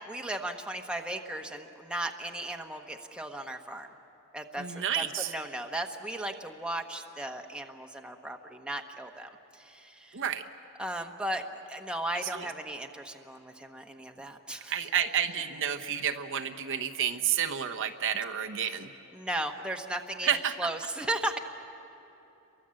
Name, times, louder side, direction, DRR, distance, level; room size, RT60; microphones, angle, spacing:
voice 1, 0.1-3.9 4.3-10.2 10.8-11.4 11.7-14.7 19.1-20.3 20.6-21.4, right 1 dB, 5° right, 3 dB, 1.1 m, -36 dB
voice 2, 4.6-5.3 10.1-10.4 12.3-12.5 14.7-18.9 20.2-20.6, right 9 dB, 60° right, 5 dB, 1.0 m, -30 dB
29.5 x 23.5 x 7.7 m, 2.9 s
head